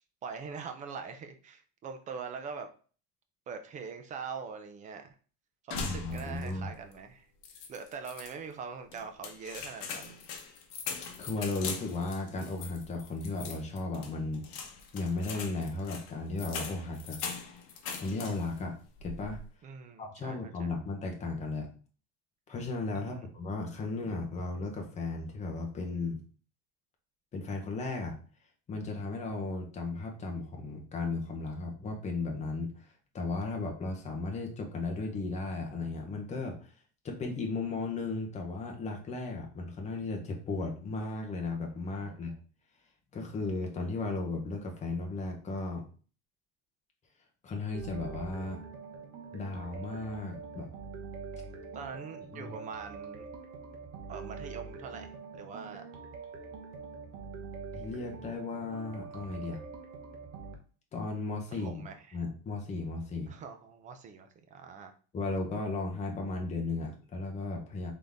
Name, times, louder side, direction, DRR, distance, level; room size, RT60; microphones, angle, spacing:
voice 1, 0.0-2.7 3.5-5.1 5.6-7.3 7.7-10.2 19.6-20.8 23.1-23.2 41.9-42.3 51.7-53.3 54.1-55.9 61.5-62.2 63.3-64.9, right 5 dB, 20° right, 7 dB, 0.3 m, -43 dB
sound 1, 5.7-6.6 6.9-7.0 7.4-8.3 8.9-18.6 19.0-19.5, left 5 dB, 60° left, 1.0 m, -41 dB
voice 2, 5.8-6.7 11.2-14.6 14.9-17.2 18.0-19.4 20.0-21.7 22.5-26.2 27.3-28.1 28.7-32.7 33.1-36.7 37.0-42.3 43.1-45.8 47.4-48.6 49.3-50.7 52.3-52.6 57.7-59.6 60.9-61.8 62.1-63.3 65.1-67.9, left 3 dB, 20° left, 2 dB, 0.9 m, -35 dB
sound 2, 47.7-60.5, right 4 dB, 45° right, 1.0 m, -44 dB
3.9 x 3.7 x 3.4 m, 0.39 s
cardioid pair, 160°, 37 cm